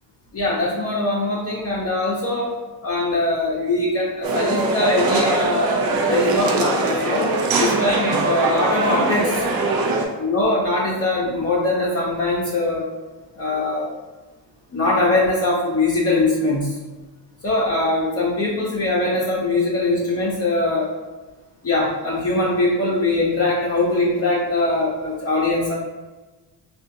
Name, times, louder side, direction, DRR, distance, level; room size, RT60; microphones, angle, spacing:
voice 1, 0.3-2.5 2.8-7.3 7.6-9.4 10.1-12.9 13.3-13.9 14.7-16.8 17.4-20.9 21.6-25.8, left 2 dB, 35° left, -6 dB, 0.7 m, -22 dB
sound 1, 4.2-10.0, right 2 dB, 60° right, 0.6 m, -21 dB
3.5 x 2.5 x 2.6 m, 1.2 s
cardioid pair, 85°, 41 cm